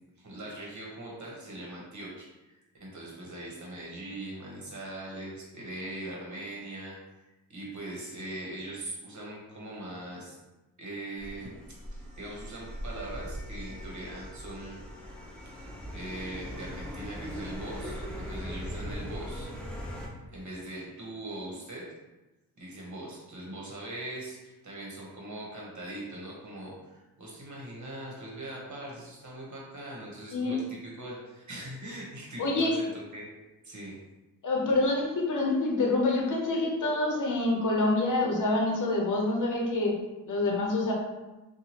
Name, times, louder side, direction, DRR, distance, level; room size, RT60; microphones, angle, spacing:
voice 1, 0.2-6.9 7.5-10.4 10.8-11.5 11.9-14.8 15.5-15.6 15.9-19.5 20.3-21.8 22.6-32.9 33.1-33.3 33.6-33.9, right 1 dB, 45° right, -3 dB, 1.2 m, -41 dB
sound 1, 11.2-20.1, equal, ahead, 0.7 m, -40 dB
voice 2, 32.4-32.7 34.4-39.9 40.3-40.9, left 2 dB, 50° left, -1 dB, 0.9 m, -26 dB
2.7 x 2.3 x 3.0 m, 1.1 s
supercardioid pair, 45°, 40 cm